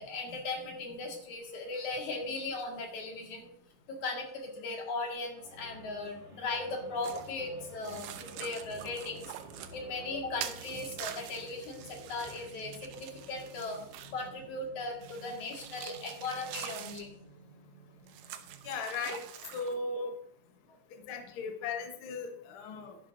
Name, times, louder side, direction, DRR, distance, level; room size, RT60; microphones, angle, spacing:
voice 1, 0.0-3.5 3.9-9.3 9.7-13.8 14.1-17.1 18.4-18.5, left 3 dB, 55° left, 1 dB, 3.2 m, -38 dB
sound 1, 5.3-18.5, right 2 dB, 35° right, 1.1 m, -52 dB
sound 2, 7.0-7.3 7.8-9.8 10.4-14.3 15.0-17.1 18.1-19.8, right 11 dB, 80° right, 2.3 m, -45 dB
voice 2, 18.6-20.2 20.9-23.0, left 4 dB, 90° left, 5 dB, 1.1 m, -37 dB
13.0 x 11.5 x 2.6 m, 0.67 s
omnidirectional pair, 4.3 m